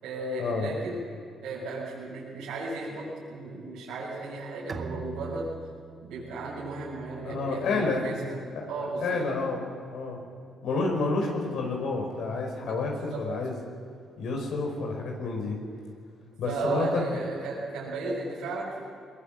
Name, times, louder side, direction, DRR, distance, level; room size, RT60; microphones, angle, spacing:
voice 1, 0.0-1.0 1.4-5.5 6.0-8.4 8.7-9.2 12.6-13.2 16.4-18.8, right 2 dB, 85° right, -6 dB, 6.7 m, -34 dB
Bowed string instrument, 4.7-8.2, right 5 dB, 40° right, 1.6 m, -43 dB
voice 2, 7.2-8.0 8.5-9.6 9.9-10.2 10.6-13.6 14.2-15.6 16.4-17.2, left 3 dB, 75° left, 1 dB, 5.3 m, -29 dB
22.0 x 21.5 x 7.6 m, 2.3 s
cardioid pair, 90°, 0 cm